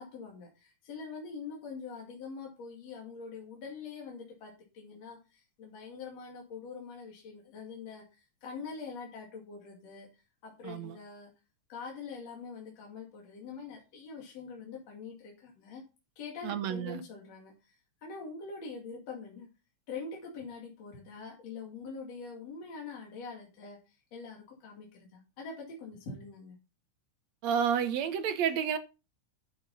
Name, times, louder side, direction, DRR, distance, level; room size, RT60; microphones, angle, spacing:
voice 1, 0.0-11.3 11.7-15.8 16.2-19.5 19.9-26.6, left 4 dB, 60° left, 3.5 m, -44 dB
voice 2, 10.6-11.0 16.4-17.0 27.4-28.8, right 8 dB, 70° right, 2.1 m, -30 dB
10.5 x 8.0 x 4.1 m
omnidirectional pair, 3.5 m